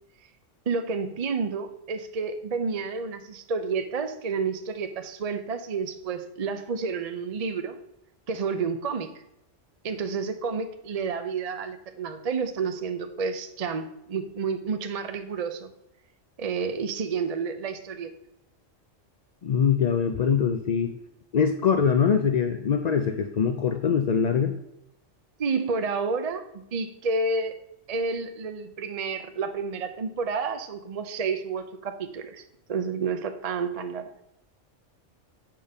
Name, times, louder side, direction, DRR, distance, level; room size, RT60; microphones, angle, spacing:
voice 1, 0.7-7.8 8.3-9.1 9.8-15.7 16.4-18.1 25.4-27.5 27.9-32.4 32.7-34.1, right 5 dB, 45° right, 8 dB, 0.5 m, -30 dB
voice 2, 19.4-20.9 21.3-24.5, left 7 dB, 55° left, 6 dB, 0.4 m, -23 dB
7.5 x 5.1 x 5.4 m, 0.82 s
omnidirectional pair, 1.3 m